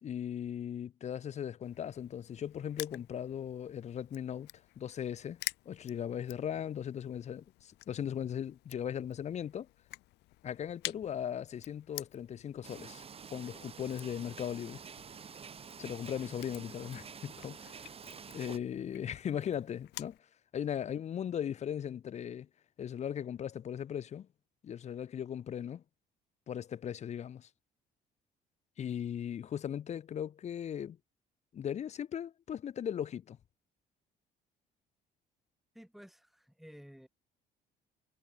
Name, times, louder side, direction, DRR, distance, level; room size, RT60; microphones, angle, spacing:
voice 1, 0.0-5.4 5.7-9.7 10.4-13.0 13.3-14.8 15.8-17.9 18.3-20.2 20.5-22.5 22.8-24.3 24.6-25.8 26.5-27.5 28.8-31.0 31.5-33.4, left 9 dB, 40° left, 0.7 m, -38 dB
Crushing, 1.6-20.2, left 19 dB, 85° left, 1.3 m, -50 dB
sound 1, 12.6-18.6, right 6 dB, 35° right, 2.1 m, -49 dB
voice 2, 35.7-37.1, equal, ahead, 3.4 m, -53 dB
cardioid pair, 110°, 17 cm